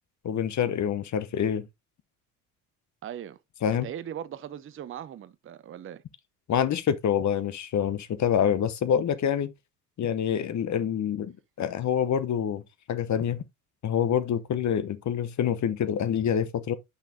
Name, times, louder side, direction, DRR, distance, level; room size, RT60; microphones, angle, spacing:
voice 1, 0.2-1.7 3.6-3.9 6.5-9.5 10.0-12.6 12.9-13.4 13.8-16.8, left 8 dB, 40° left, 0.9 m, -26 dB
voice 2, 3.0-3.4 3.7-6.0, right 10 dB, 30° right, 0.6 m, -39 dB
8.3 x 5.8 x 2.7 m
hypercardioid pair, 65°, 46 cm